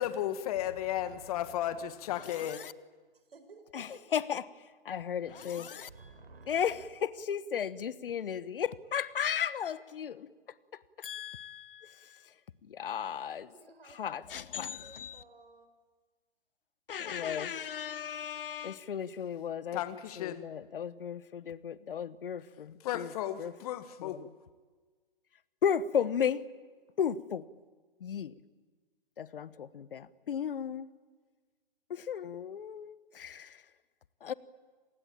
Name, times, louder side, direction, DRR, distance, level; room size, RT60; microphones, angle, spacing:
voice 1, 0.0-2.6 19.7-20.5 22.8-24.3, left 11 dB, 40° left, 1.7 m, -34 dB
voice 2, 0.5-1.9 3.1-4.1 5.9-6.9 13.2-15.7, right 3 dB, 80° right, 5.0 m, -55 dB
voice 3, 2.2-2.7 3.7-5.9 6.5-12.3 12.6-13.5 13.8-15.2 16.9-19.8 20.2-23.1 23.4-23.5 24.0-24.3 25.6-26.5 27.0-27.5 28.0-28.4 29.2-30.9 31.9-33.7 34.2-34.3, left 8 dB, 65° left, 1.1 m, -35 dB
28.0 x 20.0 x 8.9 m
hypercardioid pair, 135°, 29 cm